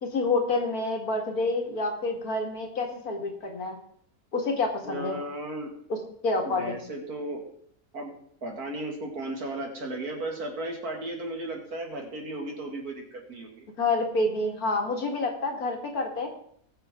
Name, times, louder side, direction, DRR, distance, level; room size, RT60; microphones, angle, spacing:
voice 1, 0.0-3.8 4.3-5.2 5.9-6.0 6.2-6.8 13.8-16.3, left 3 dB, 75° left, 2 dB, 2.6 m, -28 dB
voice 2, 4.8-5.7 6.4-7.4 7.9-8.1 8.4-13.7, right 2 dB, 80° right, 1 dB, 2.9 m, -35 dB
20.5 x 7.0 x 3.8 m, 0.66 s
omnidirectional pair, 1.6 m